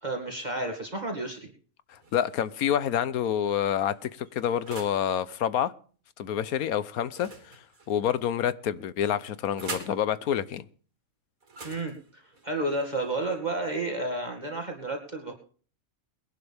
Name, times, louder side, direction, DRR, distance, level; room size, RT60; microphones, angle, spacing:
voice 1, 0.0-1.5 11.6-15.3, right 2 dB, 30° right, 2.4 m, -31 dB
voice 2, 1.9-5.7 6.2-7.6 7.9-10.6, left 9 dB, 85° left, 1.3 m, -28 dB
sound 1, 1.9-2.7 3.4-5.1 7.1-8.2 9.0-10.0 11.4-13.4, right 3 dB, 75° right, 3.1 m, -44 dB
21.5 x 11.5 x 3.5 m
omnidirectional pair, 1.5 m